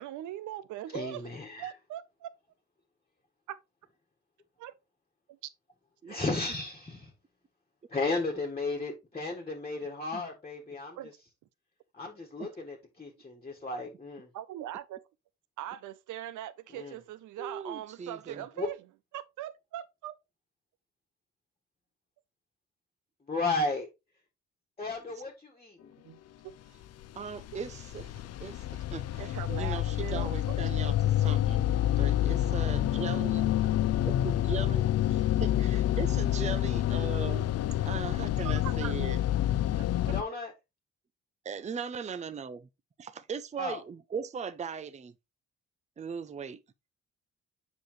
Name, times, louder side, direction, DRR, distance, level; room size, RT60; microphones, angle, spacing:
voice 1, 0.0-2.3 3.5-3.6 4.6-4.7 5.3-5.4 11.0-11.2 14.3-15.0 15.6-18.8 19.1-20.2 26.0-26.2 27.5-27.6 29.2-30.4 30.8-31.4 38.4-38.9, right 12 dB, 80° right, 0.7 m, -41 dB
voice 2, 0.9-1.7 6.1-7.1 7.9-11.0 11.9-14.3 16.7-17.0 18.6-18.7 23.3-23.9 24.8-25.9 40.1-40.5 43.6-43.8, left 3 dB, 20° left, 1.5 m, -34 dB
voice 3, 17.4-18.4 27.1-31.7 32.0-33.5 34.0-37.5 37.8-39.2 41.4-42.7 43.0-45.1 46.0-46.6, right 6 dB, 25° right, 0.5 m, -39 dB
sound 1, 27.0-40.2, left 12 dB, 55° left, 0.5 m, -28 dB
7.0 x 4.9 x 3.1 m
cardioid pair, 90°, 30 cm